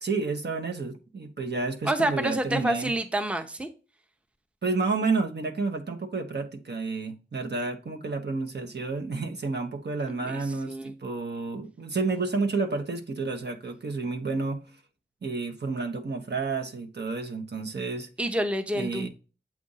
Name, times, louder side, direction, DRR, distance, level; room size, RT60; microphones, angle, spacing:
voice 1, 0.0-2.9 4.6-14.6 15.2-18.1 18.7-19.1, right 3 dB, 60° right, 1.0 m, -30 dB
voice 2, 1.8-3.7 10.1-10.9 18.2-19.1, right 1 dB, 5° right, 0.7 m, -28 dB
7.4 x 2.5 x 5.5 m
cardioid pair, 55°, 20 cm